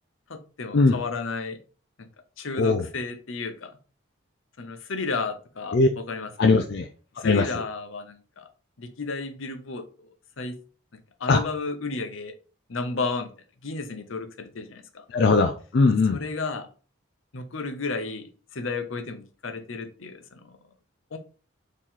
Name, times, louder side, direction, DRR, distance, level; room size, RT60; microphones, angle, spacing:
voice 1, 0.3-1.6 2.0-2.1 2.4-3.8 4.6-6.3 7.2-8.5 8.8-9.8 10.4-10.6 11.2-12.3 12.7-13.3 13.6-15.0 16.1-16.7 17.3-20.6 21.1-21.2, left 4 dB, 75° left, 7 dB, 0.8 m, -33 dB
voice 2, 6.4-6.9 7.2-7.5 11.3-11.4 15.1-16.2, left 3 dB, 55° left, 4 dB, 0.4 m, -19 dB
4.4 x 3.1 x 3.7 m, 0.38 s
head